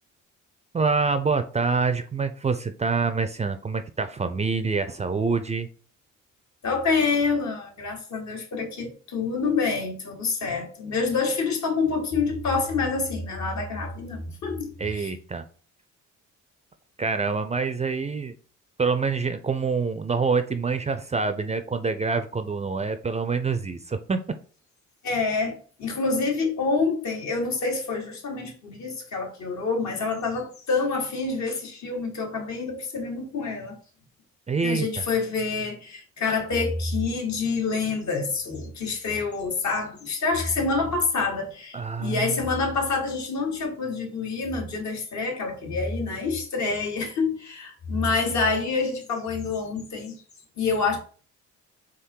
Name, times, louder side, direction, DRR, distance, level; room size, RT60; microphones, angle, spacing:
voice 1, 0.7-5.7 14.8-15.5 17.0-18.3 18.8-24.2 34.5-35.0 41.7-42.4, right 4 dB, 20° right, 0.4 m, -26 dB
voice 2, 6.6-15.1 25.0-33.7 34.6-50.2 50.6-51.0, left 4 dB, 65° left, 1.7 m, -27 dB
3.7 x 3.1 x 4.4 m
cardioid pair, 90°, 30 cm